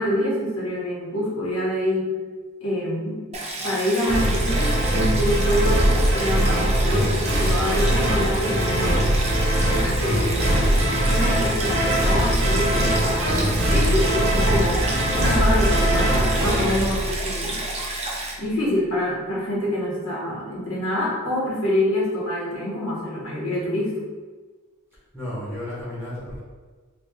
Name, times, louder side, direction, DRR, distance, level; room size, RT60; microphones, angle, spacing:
voice 1, 0.0-2.1 2.6-3.2 3.6-9.0 9.7-14.9 15.1-17.6 18.4-24.0, left 1 dB, 85° left, -6 dB, 1.3 m, -26 dB
Stream, 3.3-18.3, right 2 dB, 30° right, 0.6 m, -31 dB
sound 1, 4.1-17.7, right 1 dB, 65° right, 0.9 m, -21 dB
voice 2, 25.1-26.4, left 1 dB, 5° left, -10 dB, 0.9 m, -32 dB
4.1 x 2.3 x 3.2 m, 1.4 s
head